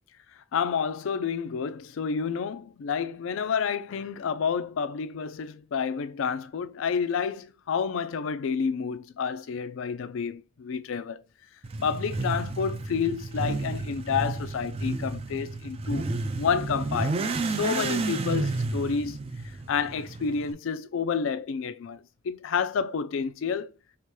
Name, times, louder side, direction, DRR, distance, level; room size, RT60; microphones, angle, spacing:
voice 1, 0.5-11.2 11.8-19.2 19.7-23.7, left 6 dB, 70° left, 0.4 m, -29 dB
Motorcycle / Accelerating revving vroom, 11.6-20.5, right 3 dB, 30° right, 0.3 m, -31 dB
4.6 x 2.9 x 2.2 m
head